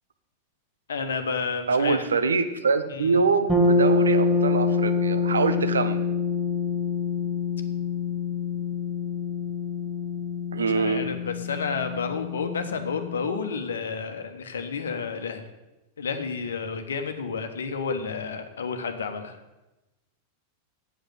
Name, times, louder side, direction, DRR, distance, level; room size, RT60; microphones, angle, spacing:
voice 1, 0.9-2.0 2.9-3.2 10.7-15.5 16.0-19.4, left 5 dB, 65° left, 8 dB, 1.2 m, -31 dB
voice 2, 1.7-6.1 10.5-11.1, right 4 dB, 70° right, 9 dB, 0.9 m, -24 dB
sound 1, 3.5-13.3, left 3 dB, 5° right, 2.5 m, -26 dB
8.1 x 7.9 x 8.5 m, 1.0 s
figure-of-eight pair, 90°, 0 cm